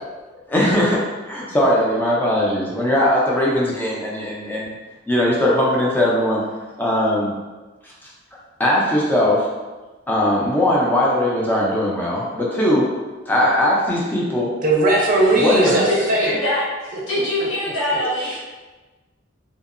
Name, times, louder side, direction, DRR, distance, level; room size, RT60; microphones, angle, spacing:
voice 1, 0.5-4.7 5.1-6.4 6.8-7.3 7.8-7.9 8.6-9.5 10.1-12.9 13.3-14.5 15.3-15.8, left 1 dB, 10° left, -5 dB, 0.4 m, -19 dB
voice 2, 14.6-16.3, right 2 dB, 45° right, -2 dB, 0.5 m, -18 dB
voice 3, 15.2-18.4, left 1 dB, 80° left, -8 dB, 0.9 m, -24 dB
2.7 x 2.0 x 2.4 m, 1.2 s
head